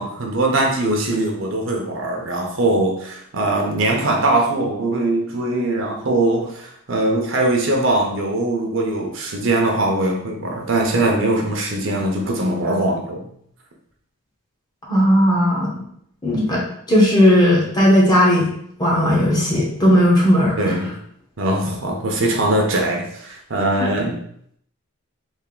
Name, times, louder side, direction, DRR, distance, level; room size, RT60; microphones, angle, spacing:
voice 1, 0.0-13.3 20.6-20.9 21.4-24.2, right 2 dB, 60° right, 1 dB, 0.7 m, -21 dB
voice 2, 14.9-15.8 16.2-16.6 16.9-18.5 18.8-20.8 23.8-23.9, equal, 20° left, -4 dB, 0.9 m, -16 dB
3.4 x 2.5 x 3.8 m, 0.68 s
head